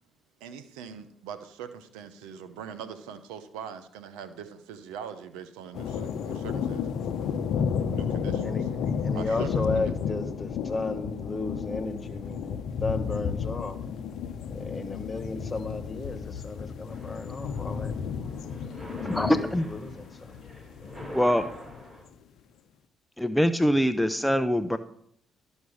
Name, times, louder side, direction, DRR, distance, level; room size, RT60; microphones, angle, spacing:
voice 1, 0.4-6.9 7.9-8.7 9.1-9.9, right 7 dB, 85° right, 11 dB, 0.8 m, -42 dB
sound 1, 5.7-21.8, left 6 dB, 70° left, 0.8 m, -32 dB
voice 2, 9.0-13.8 14.5-17.9 19.1-20.4, left 3 dB, 30° left, 10 dB, 1.5 m, -34 dB
sound 2, 16.9-22.0, equal, 35° right, 4.9 m, -46 dB
voice 3, 19.0-19.7 21.1-21.4 23.2-24.8, equal, 5° left, 10 dB, 0.6 m, -23 dB
12.5 x 5.4 x 6.3 m, 0.67 s
hypercardioid pair, 55°, 0 cm